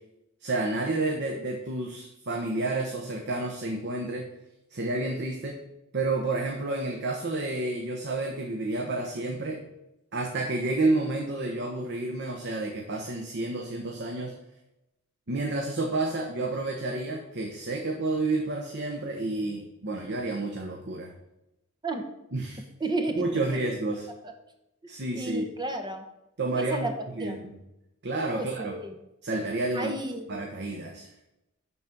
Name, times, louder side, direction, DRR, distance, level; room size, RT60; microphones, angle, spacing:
voice 1, 0.4-4.3 4.7-5.6 5.9-9.6 10.1-14.3 15.3-21.1 22.3-22.6 23.2-24.0 24.9-25.5 26.4-26.9 27.2-27.4 28.0-28.7 29.2-30.0 30.3-31.1, right 2 dB, 50° right, 2 dB, 1.0 m, -30 dB
voice 2, 22.8-23.2 23.5-23.6 24.2-24.3 24.8-26.0 26.6-26.9 27.2-27.4 28.3-29.0 29.7-30.3, right 2 dB, 20° right, 6 dB, 1.0 m, -32 dB
11.0 x 4.1 x 6.0 m, 0.90 s
head